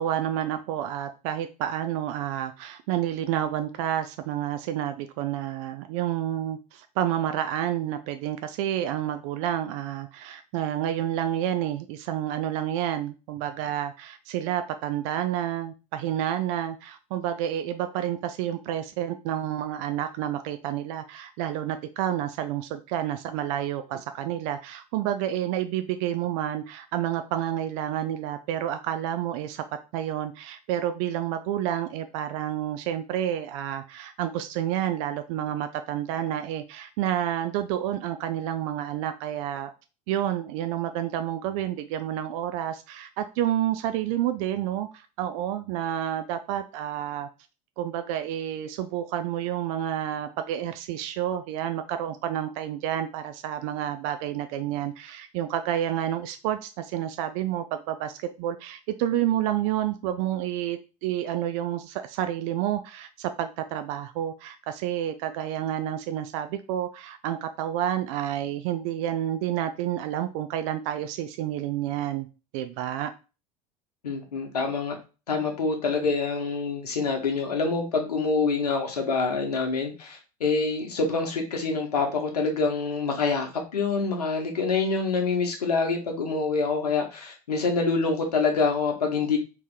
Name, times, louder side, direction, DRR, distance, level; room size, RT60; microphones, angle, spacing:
voice 1, 0.0-39.7 40.1-47.3 47.8-72.3 72.5-73.1, right 11 dB, 60° right, 9 dB, 0.4 m, -29 dB
voice 2, 74.0-75.0 75.3-89.4, left 4 dB, 85° left, 3 dB, 1.0 m, -26 dB
3.0 x 2.9 x 3.7 m, 0.32 s
hypercardioid pair, 75°, 20 cm